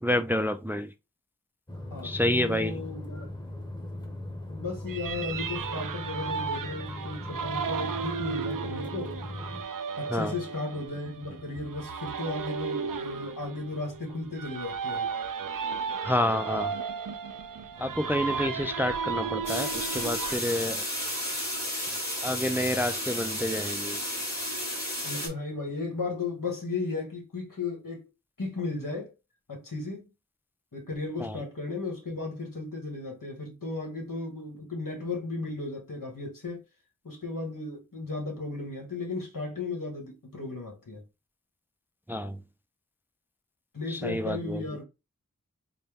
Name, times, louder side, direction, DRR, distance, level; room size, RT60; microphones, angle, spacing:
voice 1, 0.0-0.9 2.0-2.8 10.1-10.3 16.0-16.7 17.8-20.8 22.2-24.0 31.2-31.4 42.1-42.4 43.9-44.6, left 1 dB, 5° right, 0.3 m, -29 dB
sound 1, 1.7-9.6, left 1 dB, 15° left, 0.9 m, -39 dB
voice 2, 1.9-3.3 4.5-9.2 10.0-15.1 25.0-28.1 28.4-29.1 29.5-30.1 30.7-36.6 37.0-41.0 43.7-44.8, left 3 dB, 85° left, 1.5 m, -35 dB
sound 2, 4.9-20.4, right 6 dB, 85° right, 0.5 m, -34 dB
sound 3, 19.5-25.3, left 1 dB, 55° left, 2.0 m, -32 dB
4.1 x 2.2 x 3.5 m
wide cardioid pair, 40°, 32 cm